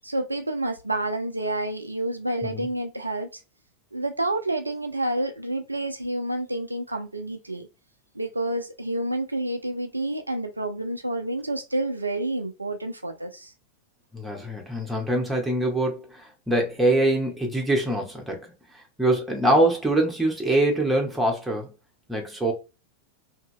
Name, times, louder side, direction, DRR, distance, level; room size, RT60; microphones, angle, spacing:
voice 1, 0.0-3.4 3.9-7.7 8.1-13.5, right 1 dB, 85° right, 0.4 m, -29 dB
voice 2, 14.1-18.4 19.0-21.7 22.1-22.5, right 1 dB, 5° right, 1.0 m, -24 dB
2.8 x 2.6 x 2.6 m
figure-of-eight pair, 90°, 0 cm